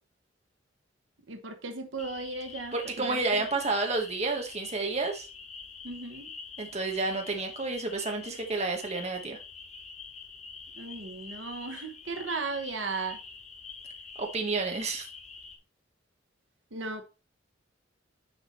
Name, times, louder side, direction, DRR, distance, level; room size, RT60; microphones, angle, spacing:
voice 1, 1.3-3.5 5.8-6.3 10.7-13.2 16.7-17.0, right 3 dB, 80° right, 1.1 m, -36 dB
sound 1, 2.0-15.6, left 5 dB, 35° left, 1.2 m, -46 dB
voice 2, 2.7-5.3 6.6-9.4 14.2-15.1, right 3 dB, 35° right, 1.2 m, -30 dB
6.5 x 4.9 x 4.2 m
head